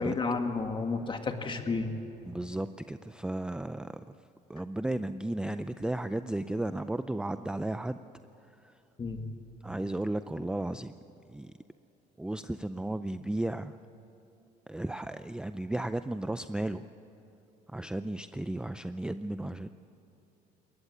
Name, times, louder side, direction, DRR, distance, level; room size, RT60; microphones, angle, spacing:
voice 1, 0.0-1.9 9.0-9.2, left 4 dB, 30° left, 5 dB, 2.1 m, -31 dB
voice 2, 2.3-3.9 4.5-8.0 8.5-8.8 9.6-10.9 11.3-11.5 12.2-13.8 14.7-16.8 17.7-19.7, right 1 dB, 5° right, 11 dB, 0.4 m, -34 dB
22.0 x 19.0 x 8.5 m, 3.0 s
cardioid pair, 110°, 17 cm